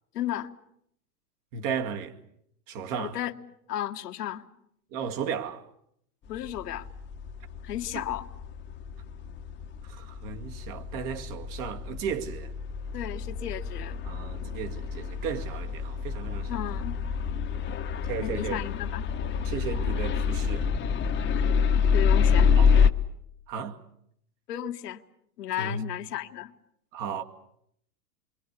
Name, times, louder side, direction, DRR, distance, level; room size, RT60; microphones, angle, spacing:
voice 1, 0.1-0.5 3.0-3.3 3.7-4.5 6.3-6.9 7.6-8.3 12.9-14.0 16.5-17.0 18.2-19.1 21.8-22.5 24.5-25.0 25.4-26.5, left 12 dB, 75° left, 1.6 m, -34 dB
voice 2, 1.5-2.2 2.7-3.2 4.9-5.7 7.9-8.0 9.8-12.5 14.0-16.6 18.0-18.6 19.4-20.7 22.6-22.7 23.5-23.8 25.6-25.8 26.9-27.2, right 6 dB, 45° right, 2.3 m, -34 dB
sound 1, 6.4-22.9, left 6 dB, 25° left, 1.2 m, -27 dB
28.0 x 23.5 x 8.2 m
hypercardioid pair, 115°, 47 cm